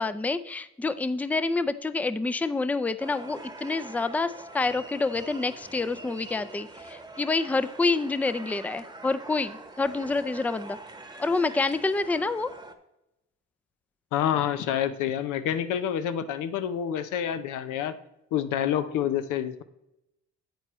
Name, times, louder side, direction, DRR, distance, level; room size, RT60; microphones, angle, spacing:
voice 1, 0.0-10.8 11.2-12.5, left 3 dB, 5° left, 13 dB, 0.4 m, -28 dB
sound 1, 3.0-12.7, right 2 dB, 15° right, 1.0 m, -44 dB
voice 2, 14.1-18.0 18.3-19.6, left 10 dB, 90° left, 12 dB, 0.7 m, -28 dB
9.1 x 8.5 x 3.0 m, 0.88 s
cardioid pair, 90°, 30 cm